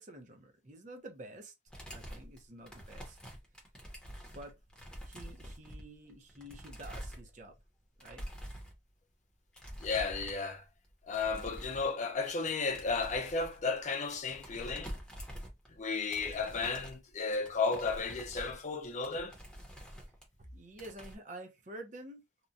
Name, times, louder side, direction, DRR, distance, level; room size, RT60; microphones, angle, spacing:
voice 1, 0.0-1.5 1.9-3.2 4.3-4.6 5.0-7.5 8.0-8.3 20.4-22.2, right 1 dB, 45° right, 0.7 m, -49 dB
sound 1, 1.7-7.7 8.0-8.8 9.6-10.6 10.8-12.0 12.3-15.8 16.1-20.4 20.7-21.2, equal, 5° left, 0.8 m, -47 dB
voice 2, 9.8-10.7 11.1-14.9 15.8-19.3, left 4 dB, 40° left, 0.6 m, -34 dB
2.9 x 2.2 x 2.6 m
head